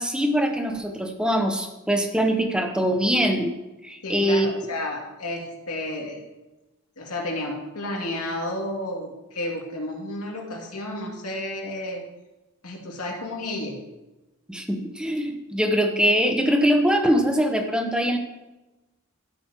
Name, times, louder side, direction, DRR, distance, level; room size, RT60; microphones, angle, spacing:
voice 1, 0.0-3.5 3.8-4.5 14.5-18.2, equal, 5° right, 4 dB, 0.8 m, -22 dB
voice 2, 4.0-6.2 7.0-12.0 12.6-13.8, left 1 dB, 90° left, -1 dB, 2.3 m, -32 dB
12.5 x 9.2 x 2.9 m, 1.1 s
head